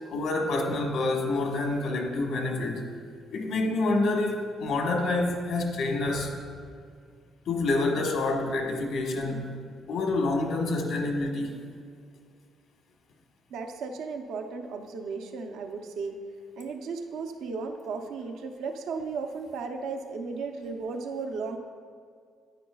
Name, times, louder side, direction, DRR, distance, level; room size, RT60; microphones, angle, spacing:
voice 1, 0.1-2.8 3.3-6.3 7.4-9.5 9.9-11.6, left 2 dB, 85° left, 1 dB, 1.2 m, -27 dB
voice 2, 13.5-16.2 16.6-21.6, right 4 dB, 85° right, 5 dB, 0.6 m, -35 dB
9.6 x 9.2 x 2.3 m, 2.2 s
cardioid pair, 90°, 0 cm